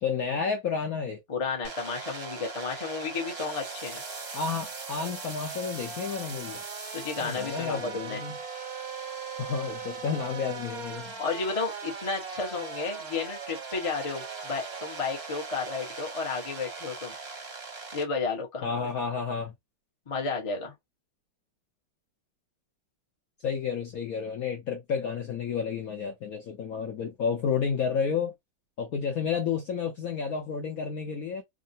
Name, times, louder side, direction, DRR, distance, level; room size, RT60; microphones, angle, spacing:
voice 1, 0.0-1.2 4.3-6.6 7.2-8.3 9.4-11.1 18.6-19.5 23.4-28.3 28.8-31.4, left 6 dB, 65° left, 0.9 m, -31 dB
voice 2, 1.3-4.0 6.9-8.2 11.2-17.1 17.9-18.9 20.1-20.7, left 4 dB, 35° left, 0.5 m, -32 dB
sound 1, 1.6-18.0, right 4 dB, 45° right, 0.9 m, -39 dB
3.7 x 2.1 x 2.6 m
omnidirectional pair, 2.2 m